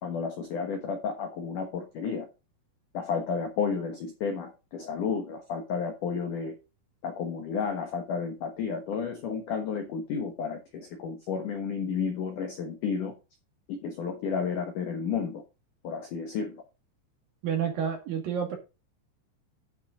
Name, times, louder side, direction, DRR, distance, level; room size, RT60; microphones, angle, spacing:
voice 1, 0.0-2.3 2.9-6.6 7.0-13.1 13.7-15.4 15.8-16.6, left 6 dB, 70° left, 2.0 m, -32 dB
voice 2, 17.4-18.6, right 8 dB, 55° right, 3.5 m, -29 dB
11.5 x 6.6 x 3.9 m
omnidirectional pair, 5.6 m